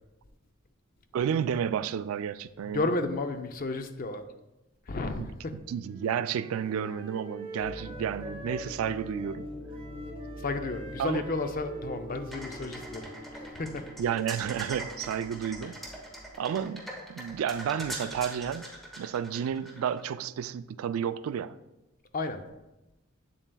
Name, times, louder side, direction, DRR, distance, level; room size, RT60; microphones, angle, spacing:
voice 1, 1.1-2.9 5.2-5.3 5.7-9.5 11.0-11.2 14.0-15.8 16.4-16.8 17.1-18.7 19.0-21.6, right 8 dB, 90° right, 0.3 m, -31 dB
voice 2, 2.6-4.2 4.9-5.6 10.4-13.1 13.3-13.8 22.1-22.4, left 2 dB, 45° left, 0.5 m, -32 dB
Wind instrument woodwind instrument, 5.8-13.6, right 1 dB, 25° right, 0.8 m, -45 dB
sound 1, 7.6-16.7, left 1 dB, 25° left, 1.2 m, -44 dB
sound 2, 12.3-20.0, right 1 dB, ahead, 0.9 m, -42 dB
8.1 x 7.3 x 2.3 m
head